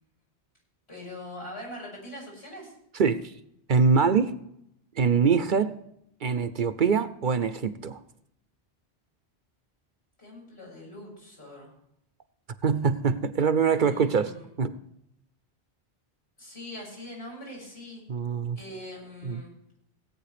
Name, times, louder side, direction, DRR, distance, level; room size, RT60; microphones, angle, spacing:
voice 1, 0.9-2.7 10.2-11.7 13.7-14.5 16.4-18.0 18.6-19.5, left 1 dB, 80° left, -3 dB, 6.9 m, -42 dB
voice 2, 2.9-3.3 3.7-4.3 5.0-5.7 6.2-8.0 12.6-14.3 14.6-14.8 18.1-18.6 19.2-19.4, right 5 dB, 55° right, 12 dB, 0.8 m, -24 dB
17.0 x 8.8 x 5.0 m, 0.79 s
omnidirectional pair, 1.1 m